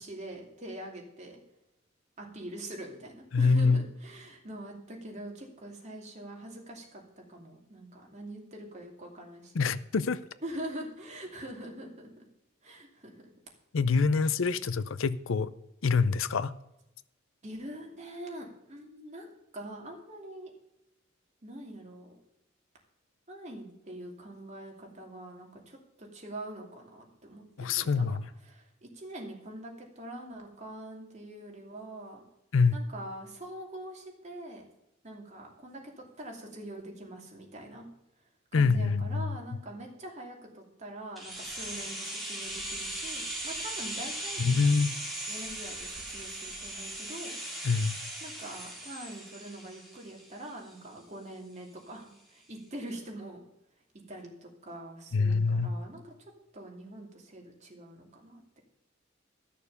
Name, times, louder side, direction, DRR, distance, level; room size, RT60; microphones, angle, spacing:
voice 1, 0.0-1.4 2.2-7.0 7.3-9.6 10.4-12.2 12.6-13.3 17.4-20.5 21.4-22.2 23.3-27.4 27.7-28.2 28.4-32.2 32.7-34.6 35.0-37.9 38.5-44.7 45.3-47.4 48.2-53.4 54.1-58.4, right 1 dB, 35° right, 2.7 m, -44 dB
voice 2, 3.3-3.8 9.5-10.2 13.7-15.5 15.8-16.5 27.6-28.3 32.5-32.8 38.5-39.4 44.4-44.9 47.6-48.0 55.1-55.8, left 4 dB, 85° left, 0.6 m, -25 dB
sound 1, 41.2-51.0 51.3-51.4, right 1 dB, ahead, 3.1 m, -38 dB
13.5 x 6.7 x 6.8 m
head